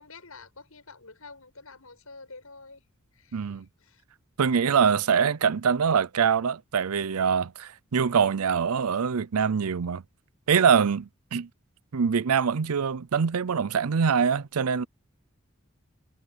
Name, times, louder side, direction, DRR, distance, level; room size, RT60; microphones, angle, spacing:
voice 1, 0.0-2.8 3.1-4.0, left 3 dB, 75° left, 7.2 m, -48 dB
voice 2, 3.3-3.7 4.4-10.0 10.5-11.5 11.9-14.8, right 6 dB, 85° right, 0.5 m, -24 dB
head